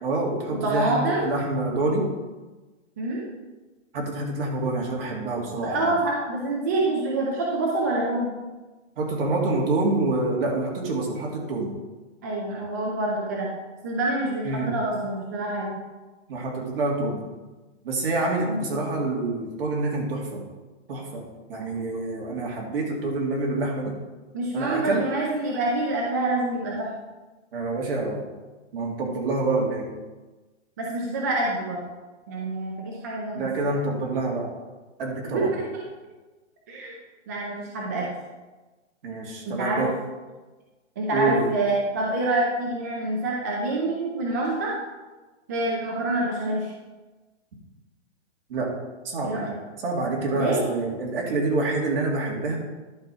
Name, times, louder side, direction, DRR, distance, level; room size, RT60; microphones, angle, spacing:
voice 1, 0.0-2.1 3.9-5.9 9.0-11.7 14.4-14.7 16.3-17.2 17.8-20.4 20.9-23.9 24.5-25.0 27.5-28.2 28.7-29.9 33.3-34.5 35.0-35.5 39.0-39.9 41.1-41.5 48.5-48.7 49.0-49.5 49.8-52.6, right 2 dB, 50° right, -1 dB, 2.3 m, -27 dB
voice 2, 0.5-1.3 3.0-3.2 5.6-8.3 12.2-13.5 13.8-15.8 18.5-18.7 24.3-26.9 30.8-31.8 32.3-33.8 35.2-35.8 36.7-36.9 37.3-38.1 39.4-39.9 41.0-44.7 45.5-46.7 49.2-49.6 50.3-50.7, right 2 dB, 15° right, -3 dB, 0.4 m, -26 dB
11.0 x 4.5 x 4.9 m, 1.2 s
hypercardioid pair, 160°, 37 cm